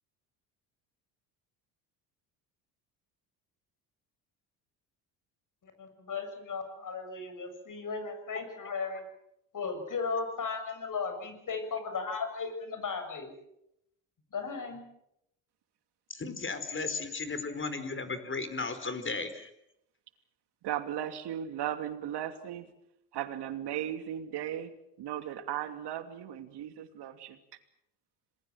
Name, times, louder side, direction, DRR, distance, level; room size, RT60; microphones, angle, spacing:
voice 1, 5.8-9.0 9.5-13.3 14.3-14.8, left 5 dB, 45° left, 8 dB, 7.4 m, -36 dB
voice 2, 16.1-19.5, left 4 dB, 25° left, 11 dB, 4.7 m, -35 dB
voice 3, 20.6-22.7 23.1-24.7 25.0-27.4, right 11 dB, 60° right, 9 dB, 2.9 m, -36 dB
27.0 x 20.5 x 7.6 m, 0.79 s
hypercardioid pair, 70°, 45 cm